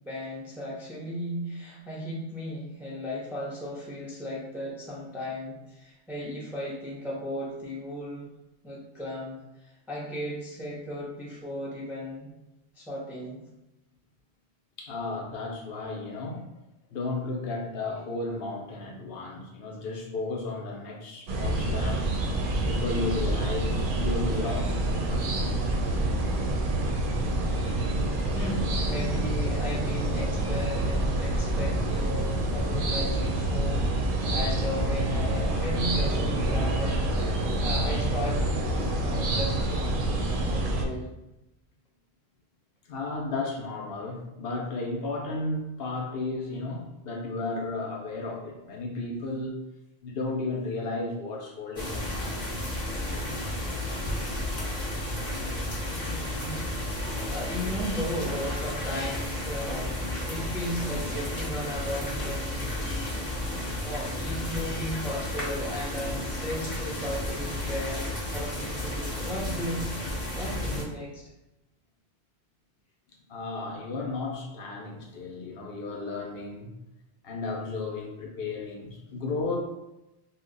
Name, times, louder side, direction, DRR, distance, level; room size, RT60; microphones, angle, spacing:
voice 1, 0.0-8.3 8.6-12.3 12.8-13.4 28.3-37.2 37.6-38.5 39.0-40.2 40.5-41.1 55.9-56.7 57.0-62.9 63.5-70.0 70.3-71.3, equal, ahead, -5 dB, 0.4 m, -36 dB
voice 2, 14.8-16.4 16.9-22.0 22.6-24.8 25.1-25.2 42.9-49.5 50.0-52.5 73.3-76.7 77.2-79.6, left 3 dB, 70° left, 0 dB, 0.7 m, -33 dB
sound 1, 21.3-40.8, right 1 dB, 60° right, 0.6 m, -27 dB
sound 2, 51.8-70.8, left 1 dB, 35° left, 0.7 m, -32 dB
2.8 x 2.1 x 3.8 m, 0.94 s
omnidirectional pair, 1.1 m